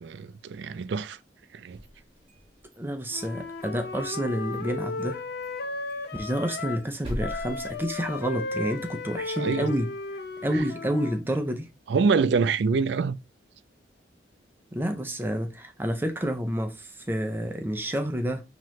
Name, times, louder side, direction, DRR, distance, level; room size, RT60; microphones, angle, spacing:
voice 1, 0.0-1.2 1.5-1.8 9.4-9.7 10.5-10.6 11.9-13.2, right 5 dB, 75° right, 0.4 m, -25 dB
sound 1, 1.6-2.8 3.1-4.2 4.5-4.6 5.0-5.1 5.4-5.5 5.9-8.5, equal, 30° right, 1.9 m, -40 dB
voice 2, 2.8-5.2 6.1-9.9 10.4-11.7 14.7-18.4, equal, 10° right, 0.5 m, -29 dB
Wind instrument woodwind instrument, 3.1-6.9 7.2-11.2, left 3 dB, 60° left, 0.7 m, -35 dB
5.8 x 2.9 x 3.1 m
head